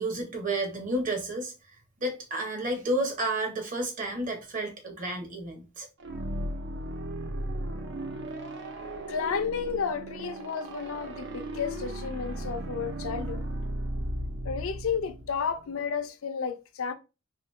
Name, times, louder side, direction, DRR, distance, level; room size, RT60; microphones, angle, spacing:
voice 1, 0.0-1.5 2.0-5.9, right 1 dB, 35° right, 0.9 m, -31 dB
sound 1, 6.0-15.7, right 1 dB, 55° right, 0.5 m, -36 dB
voice 2, 9.1-13.4 14.4-16.9, left 6 dB, 65° left, 0.5 m, -32 dB
3.0 x 2.8 x 3.1 m
head